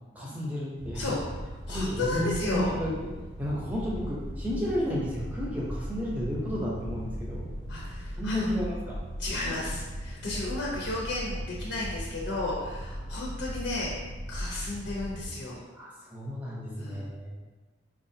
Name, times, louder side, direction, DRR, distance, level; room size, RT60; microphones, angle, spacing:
voice 1, 0.1-1.0 1.7-2.9 3.4-7.5 8.2-9.0 15.7-17.4, left 1 dB, 10° right, -5 dB, 0.7 m, -32 dB
sound 1, 0.8-15.2, equal, 90° right, 0.9 m, -38 dB
voice 2, 1.7-2.7 7.7-8.6 9.2-13.9 14.3-15.6 16.8-17.1, left 2 dB, 75° left, -5 dB, 0.7 m, -33 dB
4.7 x 2.4 x 2.7 m, 1.3 s
head